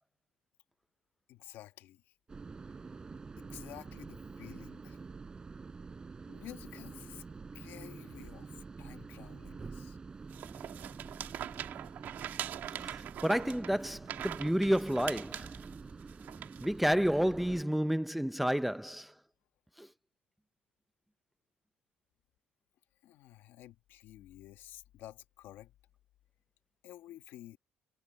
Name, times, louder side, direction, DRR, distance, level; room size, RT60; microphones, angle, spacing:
voice 1, 1.3-2.1 3.4-5.0 6.3-7.2 7.5-10.0 23.0-25.7 26.8-27.6, left 14 dB, 75° left, 2.1 m, -51 dB
sound 1, 2.3-17.6, right 4 dB, 20° right, 6.0 m, -47 dB
sound 2, 10.3-17.0, right 11 dB, 60° right, 2.1 m, -43 dB
voice 2, 13.2-15.5 16.6-19.1 19.8-19.9, equal, ahead, 0.6 m, -30 dB
cardioid pair, 140°, 4 cm